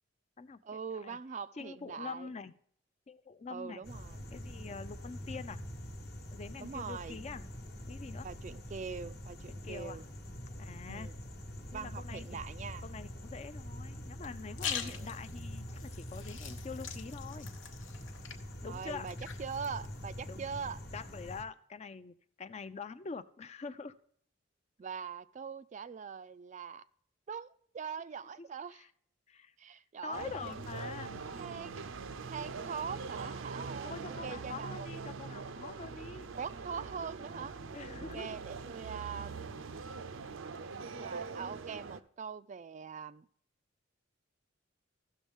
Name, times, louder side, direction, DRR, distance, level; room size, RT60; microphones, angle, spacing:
voice 1, 0.6-2.3 3.5-4.5 6.6-7.2 8.2-10.0 10.9-11.2 11.7-12.8 14.8-15.1 18.6-20.8 24.8-26.8 27.3-28.8 29.6-30.6 31.4-31.8 32.3-34.9 36.4-37.5 38.1-39.4 41.0-43.3, right 6 dB, 40° right, 0.3 m, -42 dB
voice 2, 1.6-2.5 3.1-3.8 4.3-5.6 6.3-7.4 7.9-8.3 9.5-10.0 10.6-11.1 11.7-12.4 12.8-17.5 18.6-19.1 20.3-20.4 20.9-24.0 28.4-28.5 28.7-28.9 29.3-29.5 30.0-31.2 33.8-36.3 37.7-38.4, left 4 dB, 35° left, 0.4 m, -45 dB
sound 1, 3.8-21.4, equal, 50° left, 1.1 m, -45 dB
sound 2, 14.2-20.4, left 7 dB, 75° left, 0.9 m, -44 dB
sound 3, 30.1-42.0, right 4 dB, 85° right, 0.6 m, -43 dB
15.0 x 6.3 x 3.5 m
head